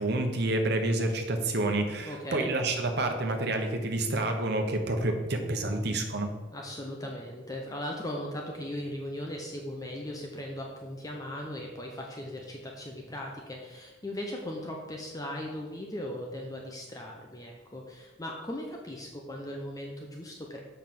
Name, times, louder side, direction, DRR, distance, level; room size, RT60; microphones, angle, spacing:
voice 1, 0.0-6.3, right 2 dB, 55° right, 4 dB, 1.1 m, -28 dB
voice 2, 2.1-2.5 6.5-20.6, left 1 dB, 20° left, 0 dB, 0.8 m, -38 dB
7.2 x 5.6 x 5.9 m, 1.2 s
head